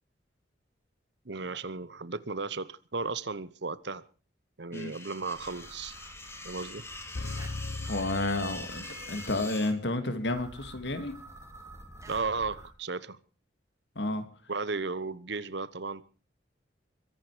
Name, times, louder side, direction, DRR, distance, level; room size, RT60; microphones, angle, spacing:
voice 1, 1.2-4.0 4.6-5.9 6.4-6.8 12.1-13.2 14.5-16.0, right 4 dB, 65° right, 17 dB, 1.0 m, -35 dB
sound 1, 4.7-9.7, left 2 dB, 15° left, 1.8 m, -44 dB
sound 2, 5.3-9.3 10.3-12.7, right 1 dB, 15° right, 3.0 m, -49 dB
sound 3, 7.1-9.3, left 2 dB, 85° left, 1.0 m, -38 dB
voice 2, 7.9-11.1 14.0-14.2, left 2 dB, 65° left, 9 dB, 2.6 m, -31 dB
23.0 x 11.0 x 5.0 m, 0.36 s
head